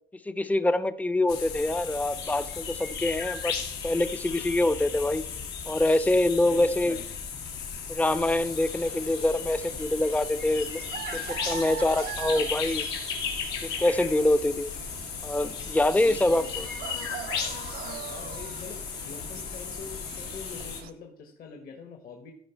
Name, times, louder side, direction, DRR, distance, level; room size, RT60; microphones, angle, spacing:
voice 1, 0.2-3.5 3.8-5.2 5.7-7.0 7.9-10.8 11.1-12.8 13.6-14.7 15.2-16.7, left 1 dB, 10° left, 14 dB, 0.6 m, -25 dB
sound 1, 1.3-20.8, left 6 dB, 90° left, 2.1 m, -35 dB
voice 2, 6.5-7.1 16.0-16.7 18.1-22.3, left 5 dB, 60° left, 3 dB, 1.4 m, -44 dB
sound 2, 8.1-20.9, right 11 dB, 65° right, 0.5 m, -43 dB
14.0 x 4.9 x 4.5 m, 0.69 s
cardioid pair, 110°, 17 cm